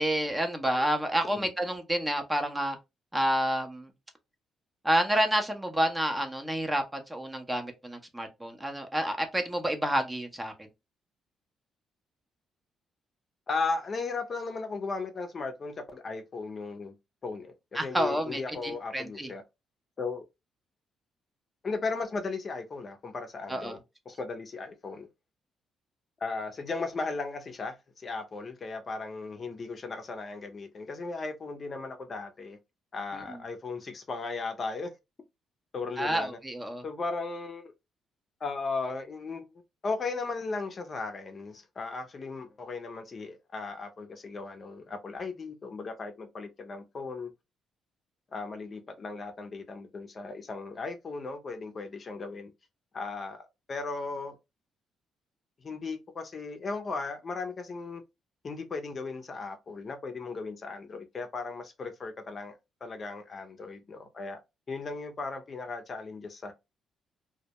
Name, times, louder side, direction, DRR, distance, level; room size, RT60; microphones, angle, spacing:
voice 1, 0.0-2.8 3.1-3.9 4.8-10.5 17.7-19.3 23.5-23.8 33.1-33.4 36.0-36.8, right 1 dB, 15° right, 0.6 m, -29 dB
voice 2, 13.5-17.0 17.2-19.4 20.0-20.2 21.6-23.8 24.1-25.1 26.2-32.6 32.9-34.9 35.7-36.4 36.8-37.7 38.4-47.3 48.3-52.5 52.9-54.4 55.6-58.0 58.4-64.4 64.7-66.5, left 4 dB, 40° left, 0.5 m, -36 dB
2.2 x 2.0 x 2.7 m
cardioid pair, 90°, 0 cm